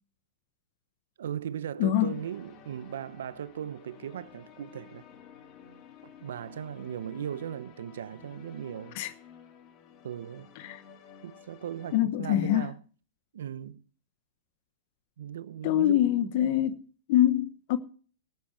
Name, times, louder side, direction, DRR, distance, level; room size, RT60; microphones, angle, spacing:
voice 1, 1.2-5.1 6.0-9.0 10.0-10.5 11.2-12.8 13.3-13.8 15.2-16.3, right 9 dB, 75° right, 0.8 m, -38 dB
voice 2, 1.8-2.2 8.9-9.1 10.6-10.8 11.9-12.7 15.6-16.8 17.1-17.8, left 12 dB, 55° left, 0.9 m, -25 dB
sound 1, 1.9-12.0, left 8 dB, 35° left, 2.4 m, -52 dB
14.5 x 9.4 x 4.5 m
hypercardioid pair, 130°, 0 cm